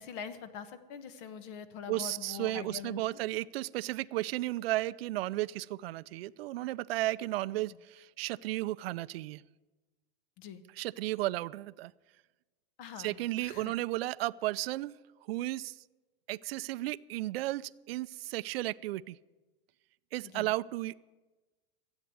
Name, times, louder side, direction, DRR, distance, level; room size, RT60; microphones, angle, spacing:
voice 1, 0.0-3.2 10.4-10.6 12.8-13.7 20.2-20.5, left 7 dB, 60° left, 12 dB, 1.3 m, -44 dB
voice 2, 1.9-9.4 10.7-11.9 13.0-14.9 15.3-15.8 16.3-19.2 20.1-21.0, right 17 dB, 80° right, 18 dB, 0.5 m, -34 dB
13.0 x 8.3 x 9.4 m, 1.2 s
supercardioid pair, 125°, 29 cm